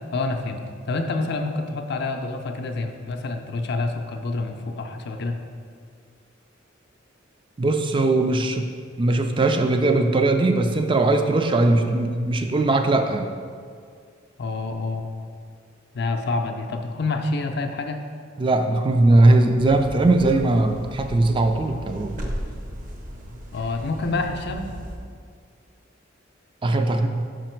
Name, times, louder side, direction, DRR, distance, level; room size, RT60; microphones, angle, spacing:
voice 1, 0.1-0.6 0.9-5.4 14.4-15.1 15.9-18.0 23.5-24.7, left 3 dB, 55° left, 5 dB, 0.5 m, -27 dB
voice 2, 7.6-8.7 9.0-13.3 18.4-22.1 26.6-27.1, right 2 dB, 25° right, 6 dB, 0.4 m, -19 dB
sound 1, 19.6-25.0, equal, 45° right, 0.7 m, -36 dB
5.6 x 5.1 x 4.4 m, 2.1 s
head